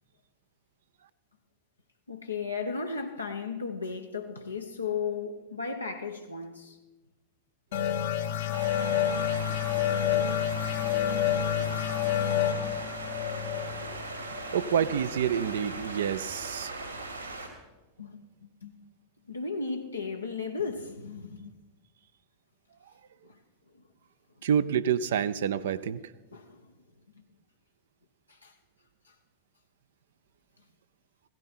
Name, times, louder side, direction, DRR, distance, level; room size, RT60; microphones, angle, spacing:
voice 1, 2.1-6.8 18.0-18.7 19.3-21.5 23.2-23.4 23.7-23.8 24.4-24.5 26.3-26.7 27.1-27.2 28.3-28.6 29.0-29.1, left 5 dB, 80° left, 1.0 m, -35 dB
sound 1, 7.7-15.0, left 10 dB, 55° left, 1.0 m, -29 dB
sound 2, 8.5-17.5, right 3 dB, 85° right, 2.7 m, -39 dB
voice 2, 14.5-16.7 24.4-26.0, right 8 dB, 60° right, 0.5 m, -27 dB
16.0 x 14.5 x 4.3 m
figure-of-eight pair, 90°, 0 cm